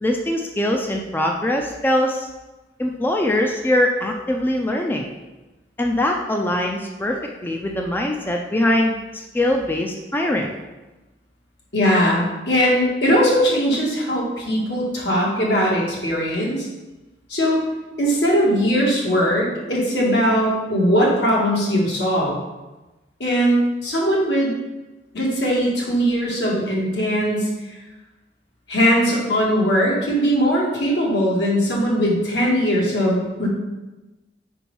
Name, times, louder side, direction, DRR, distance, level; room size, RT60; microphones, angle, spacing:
voice 1, 0.0-2.3 2.8-5.1 5.8-10.5, left 1 dB, 10° left, 1 dB, 0.4 m, -22 dB
voice 2, 11.7-16.7 17.3-17.6 18.0-22.4 23.2-24.5 25.1-27.5 28.7-33.5, equal, 75° left, -4 dB, 1.8 m, -20 dB
5.0 x 4.6 x 5.3 m, 1.1 s
head